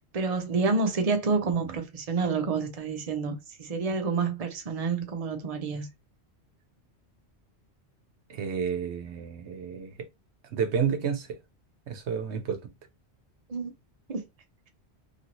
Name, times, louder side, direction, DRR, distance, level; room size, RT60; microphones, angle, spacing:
voice 1, 0.1-3.3 3.6-5.9 13.5-13.7 14.1-14.2, right 4 dB, 40° right, 0.8 m, -28 dB
voice 2, 8.3-9.9 10.5-11.4 11.9-12.7, right 7 dB, 80° right, 1.0 m, -30 dB
2.9 x 2.7 x 2.9 m
omnidirectional pair, 1.1 m